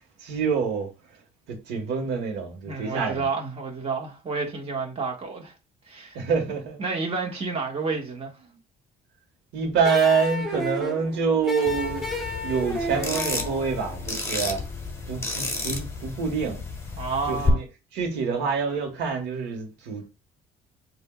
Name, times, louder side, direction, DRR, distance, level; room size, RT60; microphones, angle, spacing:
voice 1, 0.2-0.9 1.5-3.2 6.1-6.8 9.5-12.0 12.4-14.6 15.1-16.6 17.3-17.6 17.9-20.1, right 5 dB, 90° right, 1.4 m, -26 dB
voice 2, 2.7-5.5 5.9-6.2 6.8-8.3 17.0-17.6, right 4 dB, 35° right, 1.5 m, -30 dB
sound 1, 9.8-14.9, left 1 dB, ahead, 1.3 m, -33 dB
sound 2, 11.7-17.5, left 3 dB, 15° left, 1.4 m, -32 dB
7.7 x 2.7 x 2.3 m
cardioid pair, 110°, 17 cm